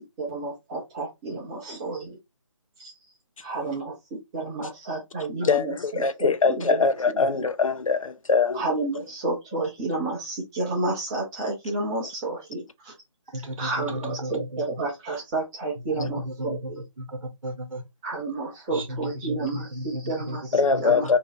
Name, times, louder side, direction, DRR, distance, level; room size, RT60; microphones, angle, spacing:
voice 1, 0.2-2.2 2.8-2.9 3.4-7.5 8.5-12.9 13.6-16.8 18.0-21.2, right 2 dB, 10° right, 0.5 m, -31 dB
voice 2, 5.4-8.6 20.5-21.2, left 5 dB, 85° left, 0.5 m, -22 dB
voice 3, 13.3-14.8 15.7-17.8 18.7-21.1, equal, 85° right, 0.9 m, -35 dB
2.7 x 2.1 x 3.8 m
figure-of-eight pair, 160°, 17 cm